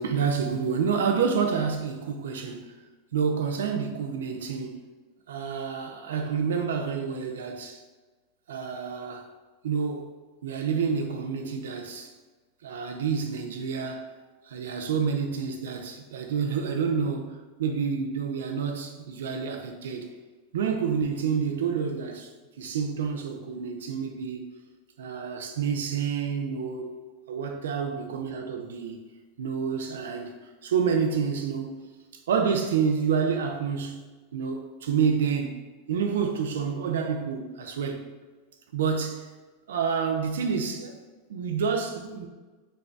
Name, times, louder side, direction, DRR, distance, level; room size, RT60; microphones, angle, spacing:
voice 1, 0.0-2.7 3.1-4.8 5.3-7.8 8.5-9.2 9.6-10.1 10.4-12.1 12.6-14.1 14.5-20.1 20.5-22.3 22.6-24.4 25.0-26.9 27.3-29.0 29.4-30.3 30.6-31.8 32.3-34.0 34.3-35.6 35.9-38.0 38.7-39.3 39.7-41.0 41.3-42.3, right 6 dB, 80° right, 0.4 m, -28 dB
4.0 x 2.2 x 3.5 m
hypercardioid pair, 105°, 0 cm